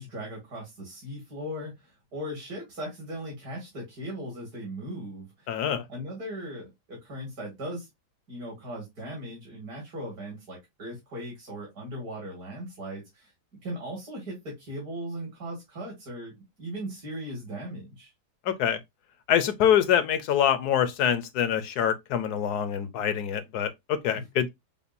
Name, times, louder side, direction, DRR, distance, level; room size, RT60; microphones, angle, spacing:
voice 1, 0.0-5.6 5.9-7.9 8.3-18.1 24.2-24.3, equal, 65° right, 2.7 m, -38 dB
voice 2, 5.5-5.8 18.5-18.8 19.3-24.5, left 9 dB, 75° left, 1.2 m, -25 dB
6.9 x 2.4 x 2.6 m
omnidirectional pair, 1.8 m